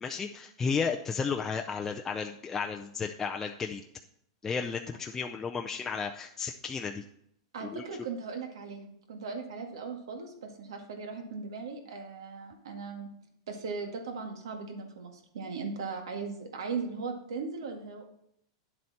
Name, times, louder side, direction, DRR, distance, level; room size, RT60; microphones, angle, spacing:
voice 1, 0.0-3.8 4.4-7.0 7.6-7.8, left 5 dB, 15° left, 3 dB, 0.5 m, -33 dB
voice 2, 7.5-13.1 13.5-18.1, right 4 dB, 80° right, 4 dB, 1.9 m, -38 dB
10.0 x 7.7 x 4.2 m, 0.72 s
supercardioid pair, 140°, 3 cm